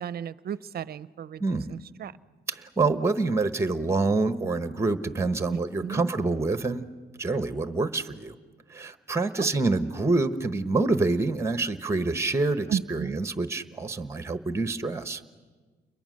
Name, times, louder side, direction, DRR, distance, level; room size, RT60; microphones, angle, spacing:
voice 1, 0.0-2.2 5.5-6.1 9.4-9.9 12.7-13.2, right 8 dB, 50° right, 18 dB, 0.6 m, -35 dB
voice 2, 1.4-1.8 2.5-6.9 7.2-8.4 8.7-15.2, right 3 dB, 15° right, 11 dB, 1.0 m, -27 dB
29.0 x 22.0 x 6.4 m, 1.4 s
cardioid pair, 90°, 20 cm